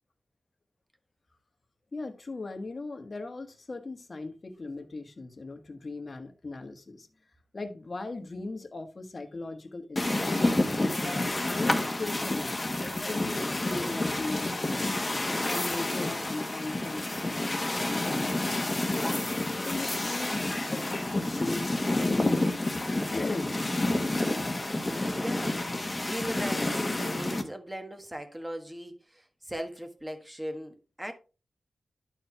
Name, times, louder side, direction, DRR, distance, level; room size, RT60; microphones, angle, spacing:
voice 1, 1.9-7.1 7.5-10.5 11.0-15.0 15.5-18.9 19.5-20.4 20.7-22.7 23.1-23.5, left 3 dB, 50° left, 1.4 m, -38 dB
sound 1, 10.0-27.4, left 2 dB, 30° left, 1.4 m, -29 dB
voice 2, 25.1-31.1, equal, 10° right, 1.5 m, -39 dB
11.5 x 4.6 x 3.3 m
wide cardioid pair, 75°, 0 cm